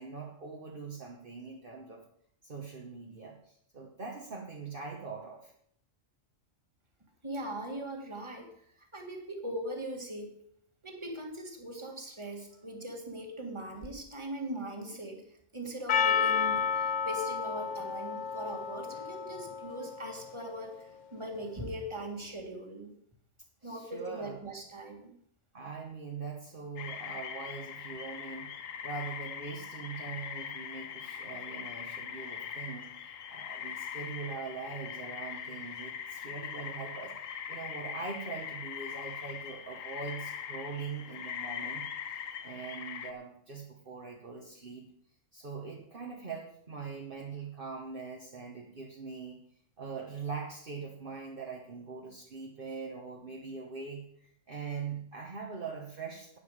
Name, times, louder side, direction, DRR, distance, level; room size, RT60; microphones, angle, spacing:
voice 1, 0.0-2.0 2.4-5.5 23.6-24.4 25.5-28.5 28.8-32.9 33.3-41.9 42.4-44.9 45.3-49.4 49.8-56.4, right 5 dB, 45° right, -1 dB, 1.4 m, -42 dB
voice 2, 7.2-8.6 8.9-10.4 10.8-15.2 15.5-22.9 23.6-25.2, right 1 dB, 20° right, 2 dB, 2.0 m, -40 dB
Percussion, 15.9-20.4, left 7 dB, 55° left, 0.5 m, -31 dB
sound 1, 26.8-43.1, left 8 dB, 90° left, 1.2 m, -41 dB
12.5 x 9.4 x 4.9 m, 0.67 s
omnidirectional pair, 1.3 m